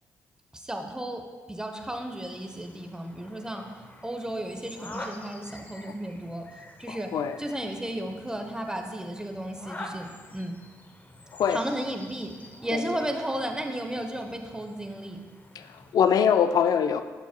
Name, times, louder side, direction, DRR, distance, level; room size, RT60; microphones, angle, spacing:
voice 1, 0.5-1.2 1.5-3.6 4.0-6.4 6.8-7.1 7.4-10.6 11.5-12.3 12.6-15.2, right 1 dB, 10° right, 4 dB, 0.8 m, -34 dB
sound 1, 1.9-15.9, left 2 dB, 25° left, 0.7 m, -47 dB
voice 2, 6.9-7.4 11.3-11.6 12.7-13.0 15.6-17.0, left 7 dB, 65° left, 10 dB, 0.4 m, -24 dB
7.3 x 7.0 x 2.2 m, 1.5 s
supercardioid pair, 55°, 7 cm